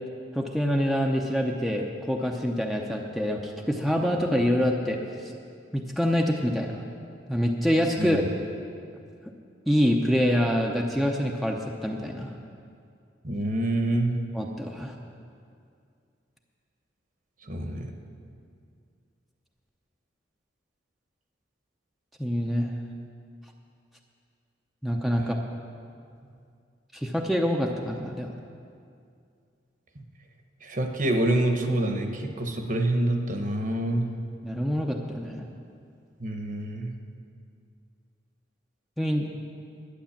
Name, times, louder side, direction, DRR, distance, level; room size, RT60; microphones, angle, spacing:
voice 1, 0.3-5.0 5.7-6.8 7.3-8.2 9.7-12.3 14.3-14.9 22.2-22.7 24.8-25.4 26.9-28.3 34.4-35.5 39.0-39.3, equal, ahead, 0 dB, 0.7 m, -26 dB
voice 2, 8.0-8.3 13.2-14.2 17.4-17.9 25.2-25.4 30.6-34.1 36.2-37.0, right 1 dB, 45° right, 4 dB, 1.1 m, -27 dB
11.5 x 9.2 x 7.3 m, 2.4 s
head